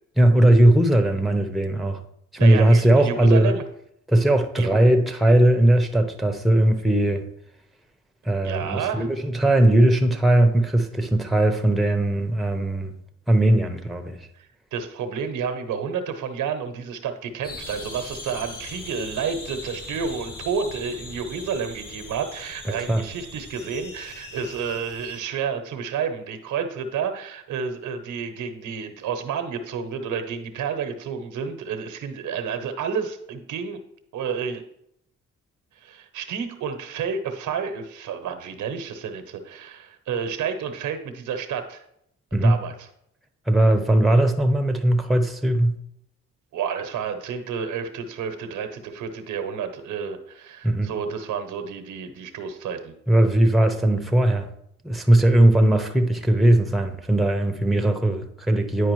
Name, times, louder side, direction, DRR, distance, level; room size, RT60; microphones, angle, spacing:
voice 1, 0.2-2.0 2.3-3.6 4.1-7.3 8.2-12.9 13.3-14.3 22.7-23.0 42.3-42.6 43.5-45.8 50.6-50.9 53.1-54.5 54.8-58.9, right 1 dB, ahead, 0.7 m, -19 dB
voice 2, 2.4-3.6 4.6-4.8 8.4-9.1 14.4-33.8 34.1-34.6 35.8-41.8 42.3-42.9 46.5-52.9, right 6 dB, 80° right, 0.9 m, -30 dB
sound 1, 17.4-25.2, left 2 dB, 55° left, 2.9 m, -40 dB
9.6 x 4.8 x 3.1 m
cardioid pair, 80°, 30 cm